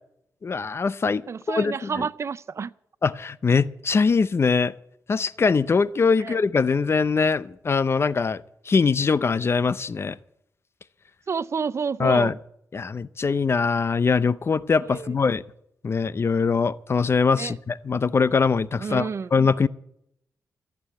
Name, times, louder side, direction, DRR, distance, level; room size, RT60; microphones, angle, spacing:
voice 1, 0.4-1.2 1.5-1.9 3.0-4.7 5.1-10.2 12.0-12.3 12.7-15.4 15.8-19.7, left 5 dB, 40° left, 0.6 m, -22 dB
voice 2, 1.3-2.7 6.2-6.4 11.3-12.3 14.8-15.2 17.4-17.5 18.8-19.3, right 5 dB, 45° right, 0.4 m, -30 dB
14.5 x 8.4 x 8.4 m
cardioid pair, 85°, 6 cm